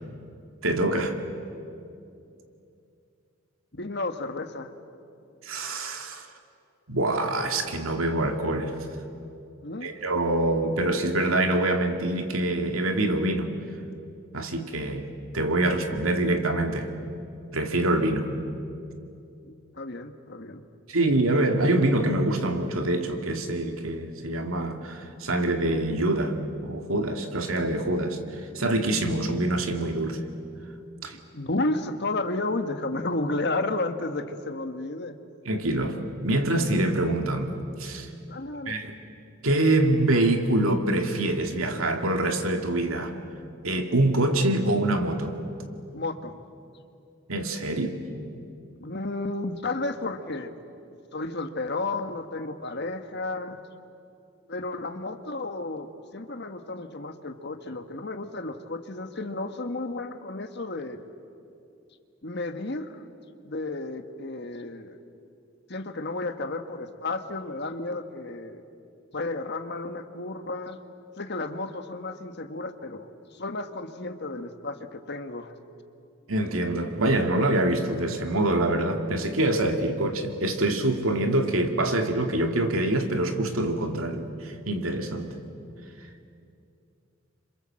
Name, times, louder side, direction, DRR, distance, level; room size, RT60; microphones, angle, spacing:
voice 1, 0.6-1.2 5.4-6.3 6.9-8.8 9.8-13.5 14.3-15.1 15.3-16.9 17.5-18.3 20.9-30.2 31.0-31.2 35.5-38.1 38.7-39.0 39.4-43.2 43.6-45.4 47.3-48.0 76.3-85.3, right 1 dB, 90° right, 5 dB, 2.3 m, -25 dB
voice 2, 3.7-4.7 9.6-9.9 19.4-20.6 31.3-35.2 38.3-38.7 45.9-46.4 48.8-50.6 51.1-53.6 54.5-61.1 62.2-62.9 63.4-65.0 65.7-68.6 69.1-70.8 71.2-75.5, left 2 dB, 55° left, 7 dB, 1.5 m, -32 dB
28.0 x 26.0 x 7.7 m, 2.6 s
head